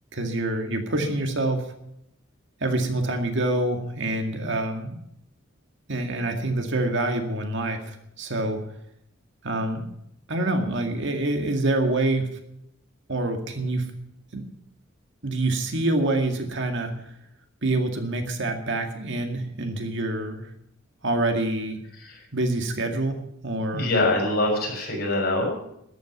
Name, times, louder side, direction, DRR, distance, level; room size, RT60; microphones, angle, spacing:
voice 1, 0.1-1.7 2.6-5.0 5.9-8.6 9.4-9.8 10.3-12.4 13.1-13.9 14.3-14.5 15.2-17.1 17.6-20.5 21.0-21.8 22.3-23.9, right 2 dB, 65° right, 5 dB, 2.1 m, -26 dB
voice 2, 23.7-25.5, left 2 dB, 50° left, 0 dB, 6.6 m, -24 dB
13.5 x 9.3 x 9.2 m, 0.78 s
head